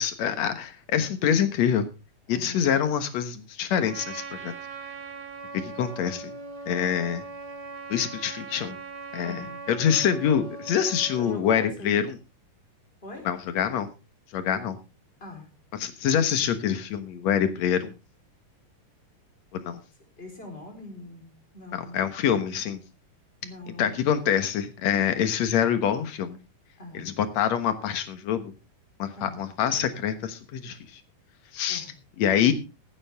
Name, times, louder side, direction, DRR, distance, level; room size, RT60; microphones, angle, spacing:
voice 1, 0.0-1.9 2.3-4.5 5.5-6.3 6.7-7.2 7.9-8.8 9.1-9.4 9.7-12.1 13.3-13.9 14.3-14.8 15.8-17.9 19.5-19.8 21.7-22.8 23.8-26.4 26.9-28.5 29.0-30.8 31.5-31.9 32.2-32.5, left 8 dB, 60° left, 10 dB, 2.3 m, -25 dB
voice 2, 2.3-2.7 9.2-9.6 11.1-12.1 13.0-13.3 15.2-15.5 20.2-22.0 23.4-24.0 26.8-27.2 29.2-29.4 31.7-32.0, left 2 dB, 15° left, 2 dB, 4.2 m, -42 dB
Trumpet, 3.9-11.4, right 4 dB, 60° right, 3.3 m, -40 dB
15.0 x 11.0 x 3.5 m, 0.29 s
omnidirectional pair, 3.7 m